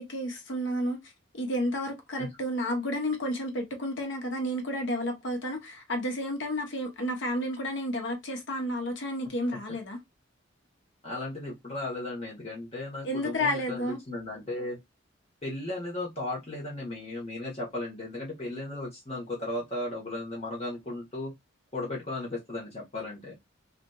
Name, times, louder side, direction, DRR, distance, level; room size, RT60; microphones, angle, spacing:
voice 1, 0.0-10.0 13.0-14.0, equal, 65° left, 0.9 m, -31 dB
voice 2, 11.0-14.8 15.4-21.3 21.7-23.3, left 2 dB, 30° left, 1.0 m, -35 dB
2.8 x 2.4 x 2.3 m
head